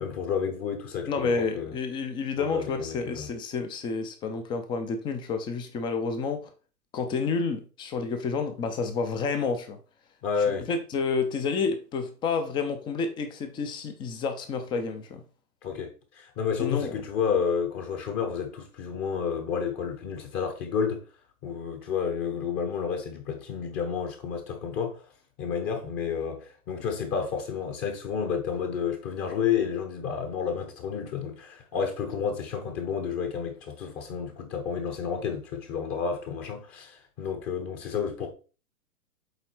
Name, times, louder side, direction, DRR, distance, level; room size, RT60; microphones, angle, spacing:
voice 1, 0.0-1.8 2.4-3.3 10.2-10.7 15.6-21.0 21.4-25.0 25.4-38.3, left 6 dB, 25° left, 1.1 m, -30 dB
voice 2, 1.1-6.5 6.9-9.8 10.5-15.2 16.6-16.9, left 4 dB, 10° left, 0.5 m, -30 dB
8.1 x 3.8 x 4.4 m
figure-of-eight pair, 115°, 46 cm